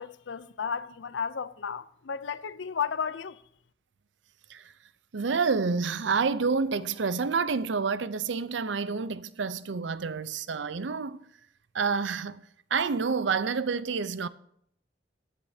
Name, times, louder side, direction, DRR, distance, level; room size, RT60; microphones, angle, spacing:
voice 1, 0.0-3.4, left 6 dB, 80° left, 0.6 m, -33 dB
voice 2, 5.1-11.2 11.7-12.4 12.7-14.3, right 5 dB, 75° right, 0.6 m, -28 dB
17.5 x 10.5 x 2.8 m
head